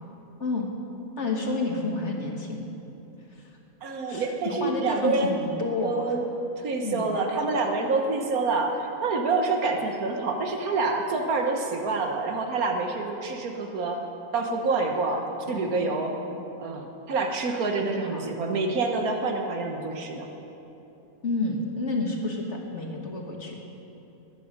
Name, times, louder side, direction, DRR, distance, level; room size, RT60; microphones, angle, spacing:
voice 1, 0.4-0.7 1.2-2.7 3.3-3.6 4.1-6.2 6.8-7.1 15.5-16.4 17.9-18.3 21.2-23.6, left 3 dB, 55° left, 0 dB, 1.7 m, -30 dB
voice 2, 3.8-5.4 5.8-6.3 6.6-14.0 14.3-16.2 16.6-20.3, right 3 dB, 90° right, 3 dB, 1.7 m, -27 dB
20.0 x 9.2 x 6.5 m, 2.9 s
omnidirectional pair, 1.5 m